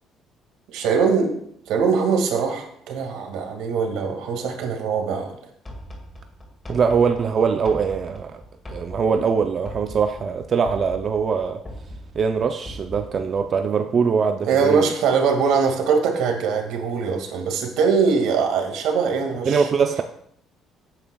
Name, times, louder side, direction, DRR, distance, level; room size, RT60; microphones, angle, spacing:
voice 1, 0.7-1.3 1.7-5.4 14.4-19.7, right 5 dB, 85° right, 4 dB, 2.0 m, -22 dB
sound 1, 5.7-13.5, equal, 20° left, 2.0 m, -40 dB
voice 2, 6.7-8.4 8.7-11.6 12.1-14.9 19.5-20.0, right 6 dB, 40° right, 6 dB, 0.5 m, -22 dB
16.0 x 8.9 x 2.3 m, 0.70 s
cardioid pair, 125°, 0 cm